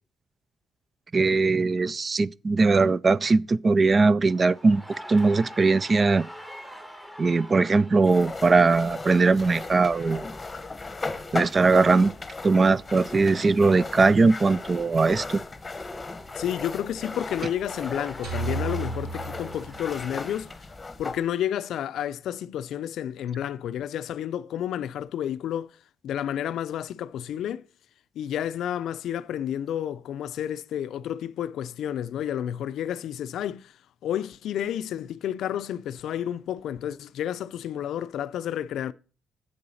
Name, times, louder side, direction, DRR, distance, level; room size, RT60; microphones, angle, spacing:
voice 1, 1.1-4.8 5.1-6.3 7.2-10.3 11.3-12.1 12.4-15.4, right 3 dB, 35° right, 0.4 m, -20 dB
sound 1, 4.2-20.8, equal, 10° right, 1.7 m, -47 dB
sound 2, 8.0-21.2, left 3 dB, 20° left, 1.0 m, -37 dB
voice 2, 16.3-20.5 21.0-25.8 26.0-27.6 28.2-33.7 34.0-38.9, left 10 dB, 75° left, 0.4 m, -31 dB
sound 3, 18.2-20.5, right 3 dB, 90° right, 5.3 m, -33 dB
7.7 x 6.9 x 6.4 m
cardioid pair, 90°, 0 cm